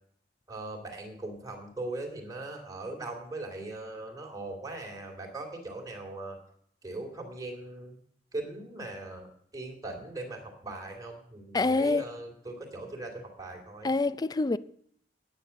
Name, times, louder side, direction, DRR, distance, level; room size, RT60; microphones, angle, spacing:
voice 1, 0.5-6.4 6.8-7.9 8.3-13.9, right 2 dB, 20° right, 2.4 m, -40 dB
voice 2, 11.5-12.0 13.8-14.6, left 3 dB, 20° left, 0.4 m, -26 dB
9.7 x 8.8 x 6.9 m
head